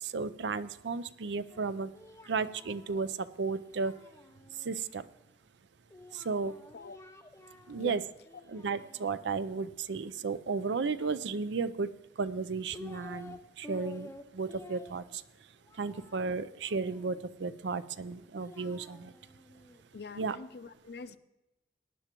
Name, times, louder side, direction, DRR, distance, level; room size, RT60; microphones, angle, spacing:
voice 1, 0.0-1.9 2.3-3.9 4.6-5.0 6.1-6.5 7.7-8.0 8.5-11.9 12.2-15.2 15.8-19.1 20.2-20.4, right 4 dB, 80° right, 0.5 m, -34 dB
Singing, 1.5-4.8 5.9-7.9 8.2-9.4 10.8-11.8 12.4-13.4 13.6-17.3 18.1-20.3, left 1 dB, 15° left, 0.6 m, -52 dB
voice 2, 19.9-21.2, left 4 dB, 60° left, 0.5 m, -44 dB
18.5 x 10.0 x 3.0 m
head